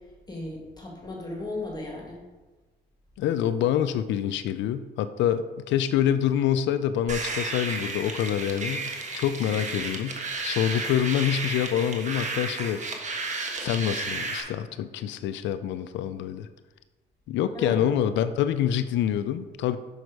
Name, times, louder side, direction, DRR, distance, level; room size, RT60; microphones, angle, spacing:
voice 1, 0.3-2.2 17.5-17.9, left 2 dB, 20° left, -1 dB, 1.9 m, -35 dB
voice 2, 3.2-12.8 13.6-16.5 17.3-19.8, left 10 dB, 90° left, 11 dB, 0.4 m, -26 dB
sound 1, 7.1-14.4, right 3 dB, 40° right, 1.3 m, -33 dB
6.2 x 5.4 x 4.7 m, 1.2 s
cardioid pair, 90°, 18 cm